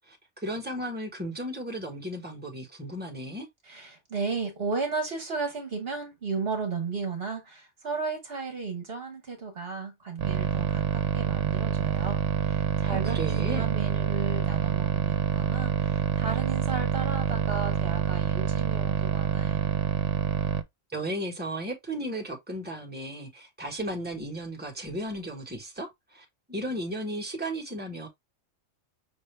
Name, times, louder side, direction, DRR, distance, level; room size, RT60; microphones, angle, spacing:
voice 1, 0.4-3.5 12.8-13.7 20.9-28.1, right 1 dB, 10° right, 1.3 m, -35 dB
voice 2, 3.7-19.8, right 4 dB, 55° right, 1.2 m, -34 dB
sound 1, 10.2-20.6, right 10 dB, 75° right, 1.0 m, -27 dB
5.7 x 2.7 x 3.2 m
omnidirectional pair, 1.2 m